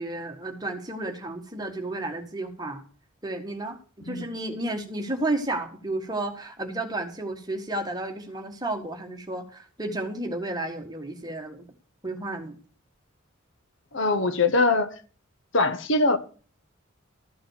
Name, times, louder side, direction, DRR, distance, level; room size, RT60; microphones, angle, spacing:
voice 1, 0.0-2.8 3.2-11.6 12.0-12.6, right 2 dB, 20° right, 1.6 m, -32 dB
voice 2, 13.9-14.9 15.5-16.2, left 3 dB, 60° left, 1.1 m, -22 dB
13.5 x 6.3 x 6.5 m
head